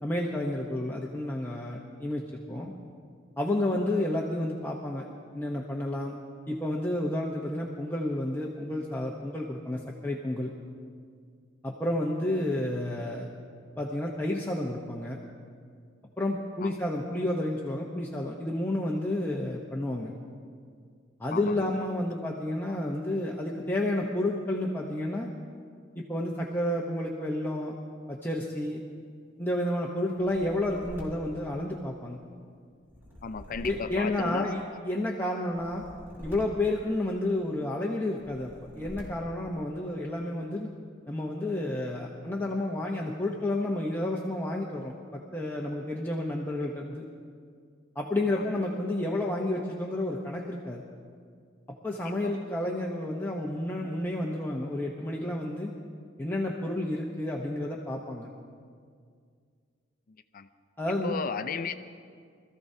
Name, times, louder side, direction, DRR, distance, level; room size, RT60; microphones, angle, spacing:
voice 1, 0.0-2.7 3.4-5.0 5.3-6.1 6.5-10.5 11.6-13.3 13.8-15.2 16.2-20.1 21.2-25.3 26.0-27.7 28.1-28.8 29.4-32.2 33.6-35.8 36.2-40.7 41.1-47.0 47.9-50.8 51.8-55.7 56.2-58.3 60.8-61.1, left 1 dB, 10° left, -3 dB, 0.9 m, -31 dB
voice 2, 21.3-21.6 33.2-34.5 52.2-52.3 60.3-60.5 61.0-61.7, left 5 dB, 45° left, 11 dB, 0.5 m, -34 dB
sound 1, 30.2-32.1 32.8-34.8 35.5-37.4 38.1-39.5, equal, 10° right, 4.5 m, -47 dB
24.5 x 14.5 x 2.8 m, 2.1 s
head